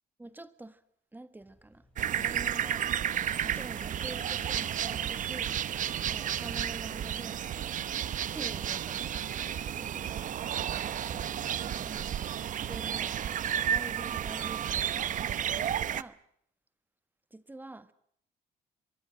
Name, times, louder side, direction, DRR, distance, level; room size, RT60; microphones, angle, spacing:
voice 1, 0.2-0.8 1.1-2.9 3.4-5.6 6.1-7.4 8.3-10.0 12.6-13.2 13.5-16.2 17.3-17.9, right 2 dB, 10° right, 1.6 m, -47 dB
sound 1, 1.4-16.0, left 1 dB, 5° left, 6.9 m, -57 dB
sound 2, 2.0-16.0, right 10 dB, 50° right, 1.0 m, -32 dB
25.5 x 23.0 x 7.7 m
cardioid pair, 110°, 17 cm